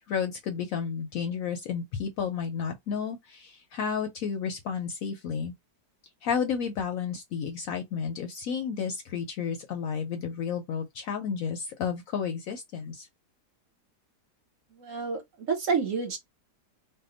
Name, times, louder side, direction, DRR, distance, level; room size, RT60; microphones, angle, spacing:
voice 1, 0.1-5.5 6.2-13.1, left 6 dB, 70° left, 0.8 m, -32 dB
voice 2, 14.7-16.2, right 5 dB, 55° right, 1.1 m, -29 dB
2.7 x 2.1 x 3.7 m
omnidirectional pair, 1.8 m